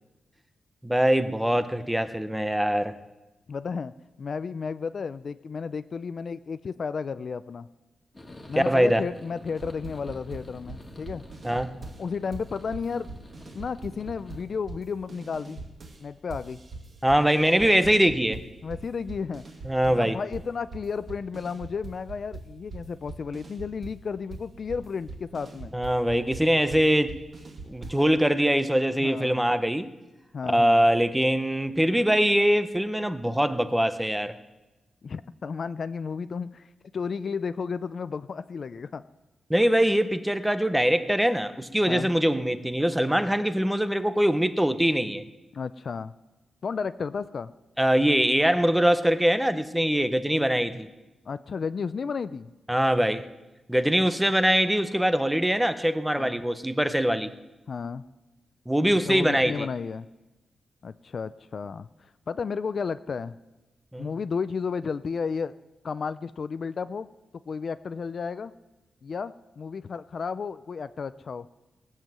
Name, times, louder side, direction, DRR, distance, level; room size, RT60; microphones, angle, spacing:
voice 1, 0.8-2.9 8.6-9.0 11.4-11.8 17.0-18.4 19.7-20.2 25.7-27.1 27.7-29.9 30.5-34.3 39.5-45.2 47.8-50.9 52.7-53.3 53.7-57.3 58.7-59.7 63.9-64.1, equal, 5° right, 11 dB, 0.6 m, -23 dB
voice 2, 3.5-7.7 8.5-11.3 12.0-13.1 13.5-15.6 16.0-16.6 17.4-17.7 18.6-19.4 19.8-25.7 29.0-29.4 30.3-30.9 35.0-39.0 41.9-42.1 45.5-46.1 46.6-47.5 51.3-52.5 56.2-56.4 57.7-58.0 59.1-60.1 60.8-63.4 64.0-65.5 65.8-67.1 67.5-68.5 69.0-71.5, left 5 dB, 45° left, 14 dB, 0.4 m, -33 dB
sound 1, 8.1-14.4, left 1 dB, 15° left, 1.8 m, -48 dB
sound 2, 9.6-12.1 12.3-16.0 16.3-20.0 20.3-28.1, right 3 dB, 45° right, 2.4 m, -42 dB
19.0 x 7.4 x 7.5 m, 1.0 s
wide cardioid pair, 145°, 0 cm